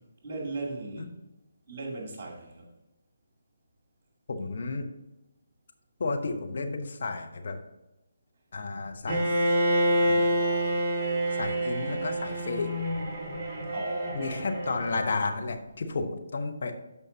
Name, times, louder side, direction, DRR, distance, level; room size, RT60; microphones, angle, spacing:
voice 1, 0.2-1.2 1.7-2.7 13.7-14.5, right 3 dB, 30° right, 0 dB, 2.7 m, -37 dB
voice 2, 4.3-4.9 6.0-7.6 8.5-9.5 10.0-10.3 11.4-12.7 14.1-16.7, left 3 dB, 45° left, 4 dB, 1.1 m, -32 dB
Bowed string instrument, 9.1-15.0, right 1 dB, 10° right, 2.0 m, -27 dB
13.0 x 5.2 x 2.8 m, 0.98 s
figure-of-eight pair, 145°, 0 cm